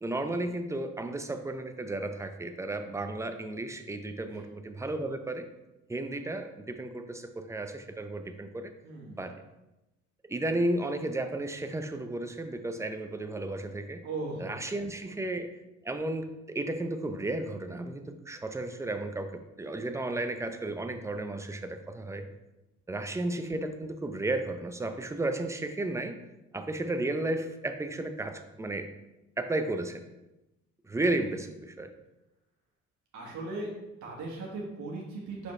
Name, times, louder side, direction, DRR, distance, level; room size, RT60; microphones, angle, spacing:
voice 1, 0.0-5.4 5.9-8.7 9.2-9.4 10.3-14.0 14.4-15.5 15.8-22.2 22.9-26.2 26.5-28.9 29.4-30.0 30.9-31.9, right 2 dB, 10° right, 7 dB, 0.5 m, -33 dB
voice 2, 8.8-9.2 14.0-14.5 33.1-33.7 34.0-35.5, right 3 dB, 75° right, -3 dB, 1.5 m, -38 dB
6.2 x 5.1 x 3.2 m, 0.98 s
cardioid pair, 90°, 30 cm